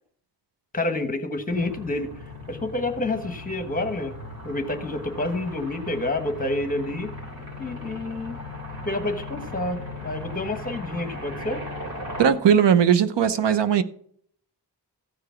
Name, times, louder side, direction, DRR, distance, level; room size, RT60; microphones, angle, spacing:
voice 1, 0.7-2.1 2.5-4.2 4.4-7.1 7.6-8.4 8.8-11.6, left 2 dB, 20° left, 1.2 m, -28 dB
sound 1, 1.5-12.3, left 2 dB, 60° right, 3.5 m, -38 dB
sound 2, 3.2-10.6, equal, 40° left, 0.7 m, -45 dB
voice 2, 12.2-13.8, right 8 dB, 85° right, 0.8 m, -18 dB
15.0 x 5.0 x 5.8 m
wide cardioid pair, 165°, 41 cm